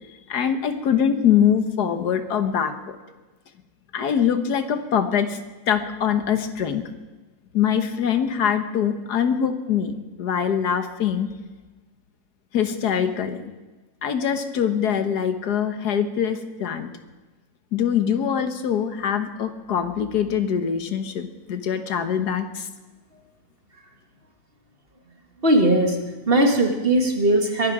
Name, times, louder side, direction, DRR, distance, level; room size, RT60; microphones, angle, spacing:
voice 1, 0.3-3.0 3.9-5.4 5.7-6.8 7.5-11.3 12.5-13.4 14.0-16.9 17.7-22.7, left 8 dB, 90° left, 9 dB, 1.7 m, -23 dB
voice 2, 25.4-26.0 26.3-27.7, right 1 dB, 35° right, 3 dB, 2.0 m, -19 dB
22.0 x 11.0 x 4.9 m, 1.2 s
omnidirectional pair, 1.7 m